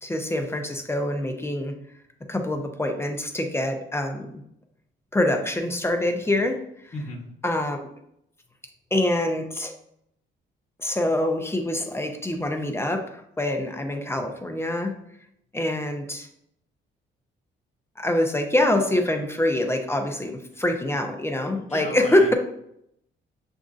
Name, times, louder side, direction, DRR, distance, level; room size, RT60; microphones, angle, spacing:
voice 1, 0.0-1.7 2.3-4.4 5.1-6.6 6.8-6.9 7.4-7.8 8.9-9.7 10.8-14.9 15.5-16.3 18.0-22.3, left 1 dB, 10° left, 5 dB, 0.6 m, -25 dB
voice 2, 6.9-7.3 21.7-22.3, left 1 dB, 35° left, -1 dB, 1.2 m, -35 dB
7.1 x 2.6 x 2.5 m, 0.74 s
cardioid pair, 90°, 20 cm